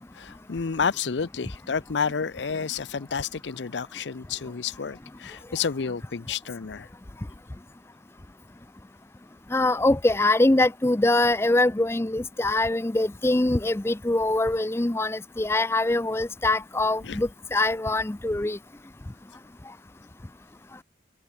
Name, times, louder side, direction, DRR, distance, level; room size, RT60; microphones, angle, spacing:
voice 1, 0.1-6.9 17.0-17.2, left 6 dB, 85° left, 0.6 m, -30 dB
voice 2, 9.5-18.6, left 2 dB, 15° left, 0.5 m, -23 dB
open air
head